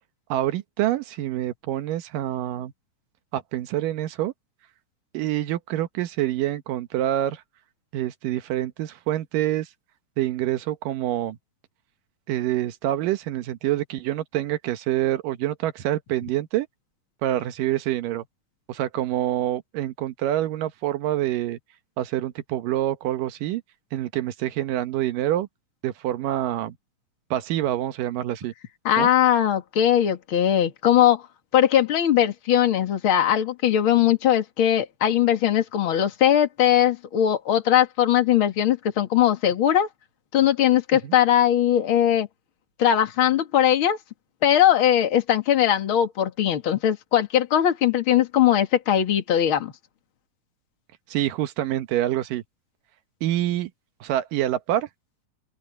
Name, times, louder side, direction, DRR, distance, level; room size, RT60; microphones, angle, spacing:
voice 1, 0.3-2.7 3.3-4.3 5.1-7.4 7.9-9.7 10.2-11.4 12.3-16.7 17.2-18.2 18.7-21.6 22.0-23.6 23.9-25.5 25.8-26.8 27.3-28.5 29.0-29.1 40.9-41.2 51.1-52.4 53.2-53.7 54.0-54.9, right 13 dB, 90° right, 2.8 m, -26 dB
voice 2, 28.8-31.2 31.5-39.9 40.3-42.3 42.8-44.0 44.4-49.7, left 10 dB, 45° left, 2.6 m, -20 dB
open air
omnidirectional pair, 3.7 m